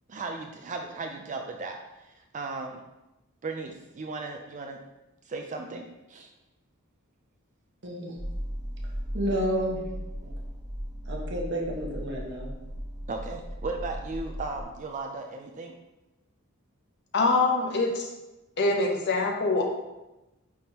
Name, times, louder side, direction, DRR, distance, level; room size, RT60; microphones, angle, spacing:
voice 1, 0.1-2.8 3.4-4.8 5.3-6.3 13.1-15.8, right 3 dB, 35° right, 3 dB, 0.4 m, -36 dB
voice 2, 7.8-8.2 9.1-9.8 10.2-10.3 11.1-12.5, equal, 55° right, -1 dB, 1.1 m, -30 dB
sound 1, 8.2-14.6, equal, 15° right, 0.8 m, -37 dB
voice 3, 17.1-18.1 18.6-19.6, left 3 dB, 55° left, 2 dB, 0.9 m, -24 dB
9.1 x 3.7 x 2.9 m, 0.99 s
head